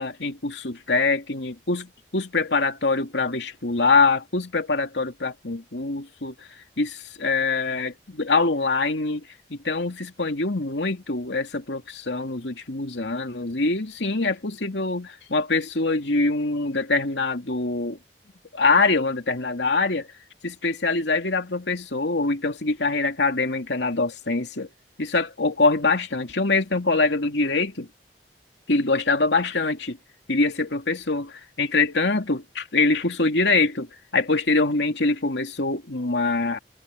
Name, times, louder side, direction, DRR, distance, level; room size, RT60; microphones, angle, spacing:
voice 1, 0.0-6.3 6.8-9.2 9.5-18.0 18.5-20.1 20.4-24.7 25.0-27.9 28.7-30.0 30.3-36.6, left 3 dB, 85° left, 2.6 m, -24 dB
head